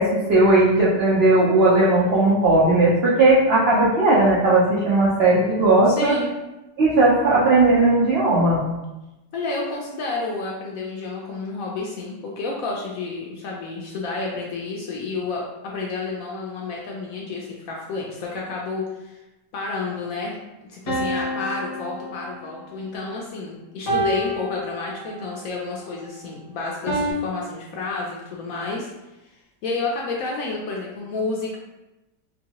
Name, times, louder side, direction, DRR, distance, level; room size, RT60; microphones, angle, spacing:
voice 1, 0.0-6.1 6.8-8.6, right 2 dB, 80° right, -6 dB, 0.5 m, -17 dB
voice 2, 5.9-6.3 9.3-19.2 19.5-20.3 20.7-28.9 29.6-31.6, left 3 dB, 70° left, -2 dB, 0.8 m, -30 dB
sound 1, 20.9-22.6 23.9-25.3 26.9-27.1, right 1 dB, 45° left, 1.0 m, -28 dB
3.0 x 2.6 x 2.8 m, 0.99 s
omnidirectional pair, 1.8 m